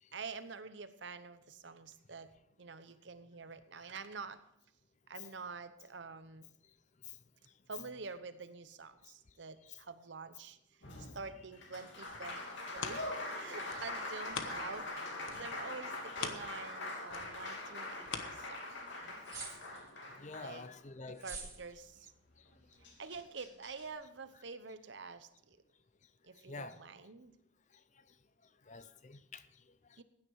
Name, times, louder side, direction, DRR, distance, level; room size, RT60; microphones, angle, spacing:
voice 1, 0.1-2.3 2.6-4.4 5.1-6.4 7.7-10.6 11.1-18.7 20.4-20.6 21.1-22.1 23.0-25.6 26.2-27.3 30.0-30.1, right 4 dB, 65° right, 0.9 m, -47 dB
Applause, 10.8-21.1 22.5-22.6 22.8-23.9, left 2 dB, 70° left, 2.9 m, -43 dB
sound 1, 11.9-14.9 15.2-19.0 19.5-19.6, left 6 dB, 85° left, 1.2 m, -45 dB
sound 2, 19.2-19.9 21.1-21.6, right 5 dB, 20° right, 2.3 m, -45 dB
voice 2, 20.1-21.3 22.4-22.5 26.5-26.8 27.7-27.8 28.6-30.0, left 4 dB, 35° left, 0.6 m, -49 dB
16.0 x 9.7 x 4.8 m
head